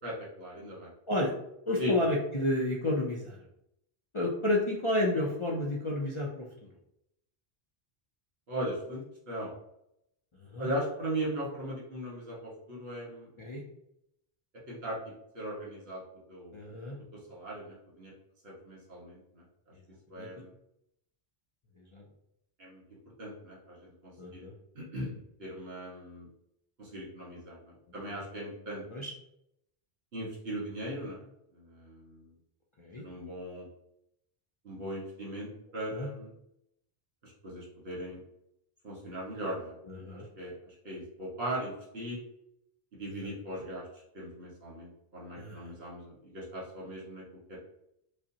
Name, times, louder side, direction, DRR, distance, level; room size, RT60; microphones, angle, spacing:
voice 1, 0.0-0.9 1.8-1.9 8.5-9.5 10.6-13.3 14.7-15.0 15.3-16.0 16.3-16.6 17.1-18.1 18.4-19.4 20.1-20.5 22.6-22.8 23.2-24.4 24.7-26.3 26.8-28.8 30.1-31.3 31.5-32.3 33.0-33.7 34.6-36.3 37.2-38.2 38.8-39.7 40.4-42.2 42.9-43.9 44.1-47.2 47.5-47.6, right 1 dB, 70° right, -5 dB, 1.7 m, -39 dB
voice 2, 1.7-3.4 4.1-6.7 10.4-10.7 13.4-13.6 16.5-17.0 20.1-20.3 21.8-22.0 24.2-24.5 28.9-29.1 32.8-33.0 35.9-36.1 39.8-40.2 43.2-43.3 45.4-45.7, left 1 dB, 40° left, -3 dB, 0.5 m, -31 dB
5.0 x 2.1 x 2.8 m, 0.78 s
omnidirectional pair, 1.1 m